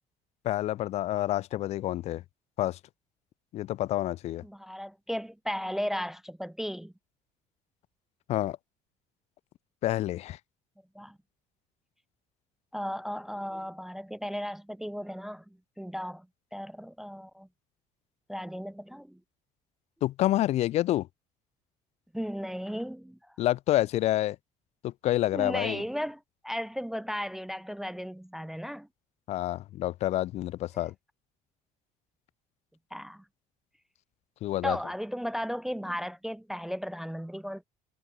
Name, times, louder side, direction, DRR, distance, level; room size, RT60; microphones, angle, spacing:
voice 1, 0.4-2.2 2.6-2.8 3.5-4.4 8.3-8.6 9.8-10.4 20.0-21.1 23.4-24.4 24.8-25.8 29.3-30.9 34.4-34.8, left 14 dB, 45° left, 0.6 m, -28 dB
voice 2, 4.4-6.9 10.9-11.2 12.7-15.4 15.8-16.3 16.5-17.5 18.3-19.2 22.1-23.2 25.3-28.9 32.9-33.2 34.6-37.6, equal, ahead, 0.5 m, -35 dB
cardioid pair, 170°, 15 cm